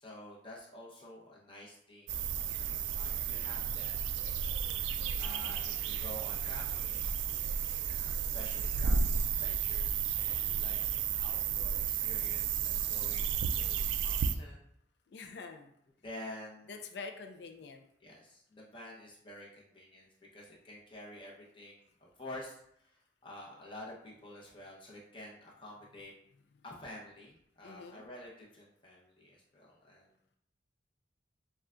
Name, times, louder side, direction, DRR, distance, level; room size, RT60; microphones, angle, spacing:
voice 1, 0.0-4.0 4.2-4.5 5.2-7.2 7.7-10.8 11.1-14.7 16.0-16.8 18.0-26.1 26.6-30.1, left 1 dB, 30° left, -4 dB, 1.0 m, -50 dB
sound 1, 2.1-14.4, right 7 dB, 90° right, 0.3 m, -33 dB
voice 2, 10.4-10.7 12.9-13.0 15.1-15.7 16.7-17.9 27.6-28.0, left 4 dB, 70° left, 5 dB, 0.5 m, -47 dB
6.9 x 2.4 x 2.5 m, 0.73 s
head